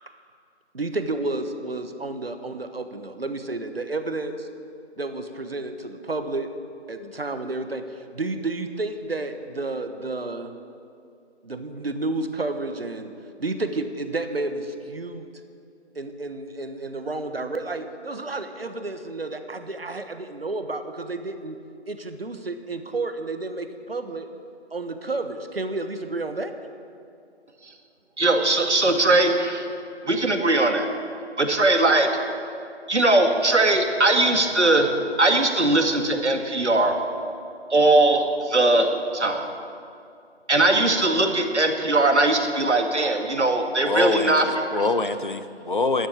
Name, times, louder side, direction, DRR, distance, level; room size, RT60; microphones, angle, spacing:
voice 1, 0.7-4.5 5.0-6.5 6.9-10.5 11.4-13.1 13.4-15.3 15.9-21.6 21.9-24.3 24.7-26.5, right 2 dB, 55° right, 8 dB, 1.4 m, -31 dB
voice 2, 28.2-29.7 30.1-30.9 31.4-32.1 32.9-34.9 35.2-37.0 37.7-39.5 40.5-44.5, right 2 dB, 75° right, 4 dB, 2.1 m, -20 dB
voice 3, 43.8-46.1, left 3 dB, 45° left, 11 dB, 0.8 m, -25 dB
12.5 x 10.0 x 8.7 m, 2.5 s
figure-of-eight pair, 170°, 34 cm